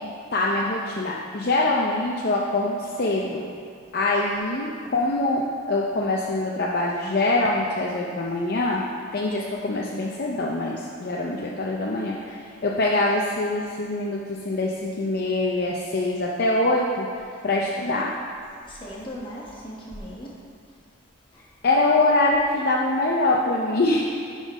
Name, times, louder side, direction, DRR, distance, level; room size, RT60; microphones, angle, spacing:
voice 1, 0.0-3.4 3.9-8.8 9.1-17.1 17.4-18.1 21.6-24.0, left 2 dB, 50° left, -3 dB, 0.5 m, -24 dB
voice 2, 18.6-20.3 21.3-21.5 22.6-22.7, equal, 25° left, -5 dB, 1.4 m, -38 dB
10.0 x 3.8 x 5.3 m, 2.4 s
head